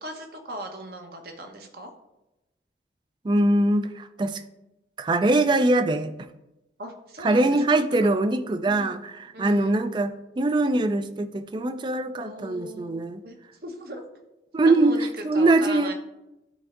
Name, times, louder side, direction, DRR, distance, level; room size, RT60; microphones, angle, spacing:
voice 1, 0.0-1.9 6.8-8.0 8.6-8.9 9.3-9.7 12.2-13.4 13.6-14.0 14.6-15.9, right 1 dB, 55° right, 4 dB, 1.0 m, -38 dB
voice 2, 3.2-4.4 5.0-6.1 7.2-13.2 14.5-15.9, right 2 dB, 25° right, 11 dB, 0.3 m, -22 dB
11.5 x 4.3 x 2.5 m, 0.95 s
head